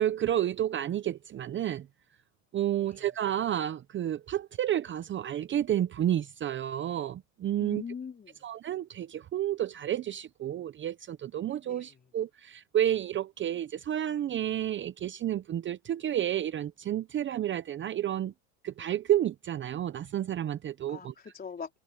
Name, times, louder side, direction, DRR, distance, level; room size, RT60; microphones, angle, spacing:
voice 1, 0.0-1.9 2.5-7.8 8.4-18.3 18.6-21.1, right 11 dB, 30° right, 0.8 m, -30 dB
voice 2, 7.6-8.4 11.6-11.9 20.9-21.7, left 6 dB, 25° left, 4.4 m, -42 dB
supercardioid pair, 115°, 38 cm